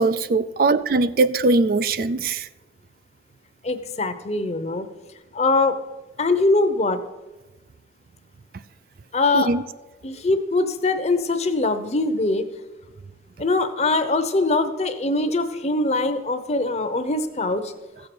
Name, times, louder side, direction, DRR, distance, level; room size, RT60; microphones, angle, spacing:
voice 1, 0.0-2.5 9.3-9.6, right 3 dB, 55° right, 0.4 m, -20 dB
voice 2, 3.6-4.9 5.3-5.7 6.2-7.0 9.1-9.5 10.0-12.4 13.4-17.6, left 2 dB, 35° left, 0.8 m, -22 dB
15.0 x 6.8 x 6.1 m
head